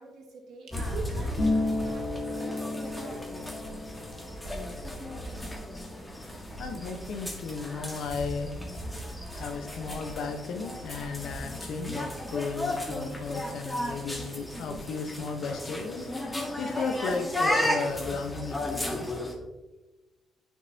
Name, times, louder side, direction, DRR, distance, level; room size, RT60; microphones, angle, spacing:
voice 1, 0.0-3.2 5.2-5.3, right 3 dB, 80° right, -1 dB, 2.1 m, -44 dB
sound 1, 0.7-19.3, left 1 dB, 10° left, 1.7 m, -35 dB
Harp, 1.3-8.8 9.1-10.2 10.5-11.1, left 2 dB, 50° left, 2.0 m, -35 dB
voice 2, 6.2-8.5 8.9-19.1, left 4 dB, 75° left, 5 dB, 1.1 m, -35 dB
9.5 x 5.9 x 2.8 m, 1.1 s
cardioid pair, 90°, 0 cm